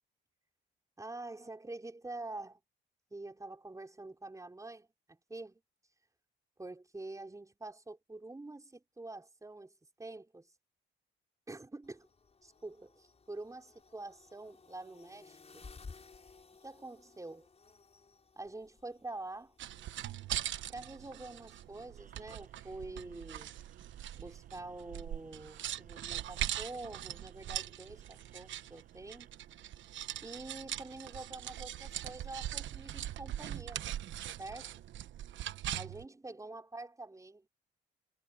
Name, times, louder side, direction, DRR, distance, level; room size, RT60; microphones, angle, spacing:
voice 1, 1.0-2.6 3.1-5.6 6.6-10.5 11.5-12.1 12.4-15.7 16.6-17.5 18.4-19.6 20.7-23.6 24.1-29.3 30.2-33.9 34.4-34.8 35.7-37.5, right 2 dB, 15° right, 5.3 m, -46 dB
sound 1, 11.8-21.8, left 4 dB, 30° left, 6.2 m, -58 dB
sound 2, 19.6-36.0, right 12 dB, 70° right, 1.1 m, -41 dB
sound 3, 22.0-29.3, right 6 dB, 45° right, 5.9 m, -69 dB
cardioid pair, 90°, 20 cm